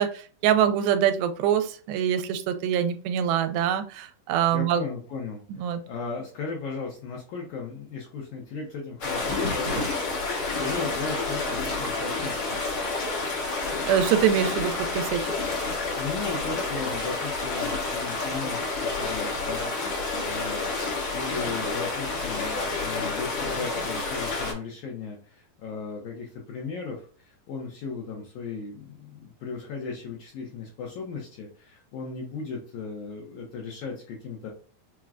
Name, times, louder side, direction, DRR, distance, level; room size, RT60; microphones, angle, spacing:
voice 1, 0.0-4.8 5.5-5.8 13.9-15.3, right 9 dB, 85° right, 8 dB, 2.4 m, -24 dB
voice 2, 4.5-12.6 15.9-20.7 21.1-34.5, left 4 dB, 75° left, -1 dB, 1.8 m, -36 dB
sound 1, 9.0-24.5, left 3 dB, 55° left, 1.5 m, -29 dB
sound 2, 9.3-13.4 13.8-14.1 14.7-14.8 15.6-18.3 20.1-20.6, left 1 dB, 65° right, 1.6 m, -41 dB
5.9 x 2.2 x 2.4 m, 0.41 s
omnidirectional pair, 4.3 m